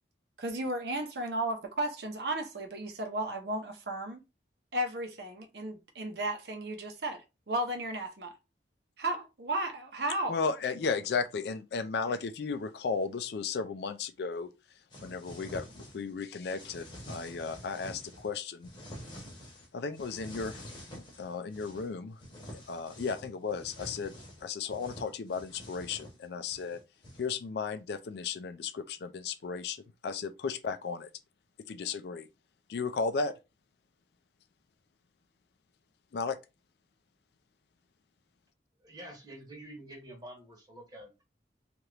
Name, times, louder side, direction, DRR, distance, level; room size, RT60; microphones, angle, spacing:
voice 1, 0.4-4.2 4.7-8.3 9.0-10.4, right 1 dB, 60° right, 0.7 m, -34 dB
voice 2, 10.3-14.5 15.0-18.7 19.7-20.6 20.9-22.2 22.7-24.1 24.4-26.8 27.2-31.1 31.7-32.2 32.7-33.3 36.1-36.4, left 5 dB, 60° left, 0.4 m, -34 dB
sound 1, 14.9-16.1 16.4-18.3 18.6-19.7 19.9-21.9 22.2-27.3, equal, 25° left, 0.9 m, -47 dB
voice 3, 38.8-41.2, right 1 dB, 20° right, 1.0 m, -48 dB
2.9 x 2.4 x 3.2 m
head